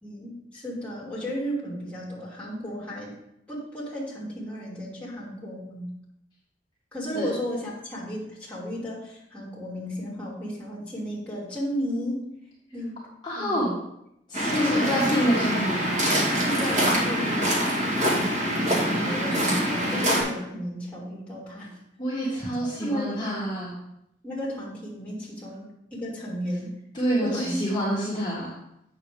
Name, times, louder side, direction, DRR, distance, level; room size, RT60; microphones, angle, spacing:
voice 1, 0.0-3.2 3.5-5.9 6.9-12.2 12.7-13.0 13.4-13.7 14.5-15.1 16.4-21.7 22.6-23.4 24.2-26.7 27.2-27.5, equal, 10° left, -5 dB, 2.8 m, -34 dB
voice 2, 13.2-13.7 14.3-15.8 22.0-23.8 26.9-28.5, equal, 25° left, -8 dB, 1.9 m, -27 dB
Waves surf, 14.3-20.2, equal, 40° right, 2.0 m, -24 dB
8.1 x 6.6 x 3.6 m, 0.79 s
head